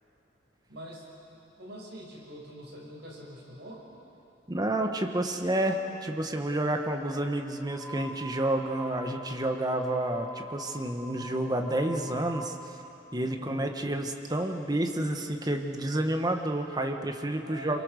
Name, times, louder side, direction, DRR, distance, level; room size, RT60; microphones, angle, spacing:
voice 1, 0.7-1.0 1.5-3.9 13.4-13.7 17.4-17.8, right 1 dB, 65° right, -2 dB, 6.0 m, -45 dB
voice 2, 4.5-12.5 13.1-17.8, right 1 dB, 20° right, 4 dB, 1.5 m, -30 dB
sound 1, 7.6-12.6, right 1 dB, 5° right, 6.6 m, -44 dB
27.5 x 23.5 x 6.7 m, 2.9 s
head